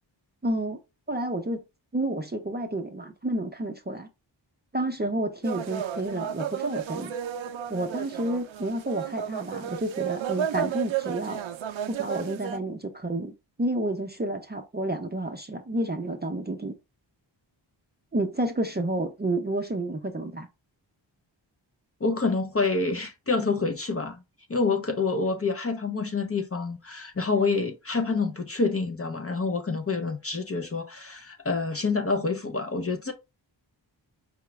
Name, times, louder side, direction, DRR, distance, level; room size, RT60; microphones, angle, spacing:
voice 1, 0.4-0.8 1.1-1.6 1.9-4.1 4.7-7.2 7.7-11.4 11.9-13.3 13.6-16.8 18.1-20.5, right 1 dB, 20° right, 0.5 m, -30 dB
sound 1, 5.4-12.6, right 9 dB, 80° right, 0.5 m, -33 dB
voice 2, 22.0-24.2 24.5-33.1, left 4 dB, 30° left, 0.6 m, -27 dB
4.9 x 2.3 x 3.1 m
wide cardioid pair, 70°, 46 cm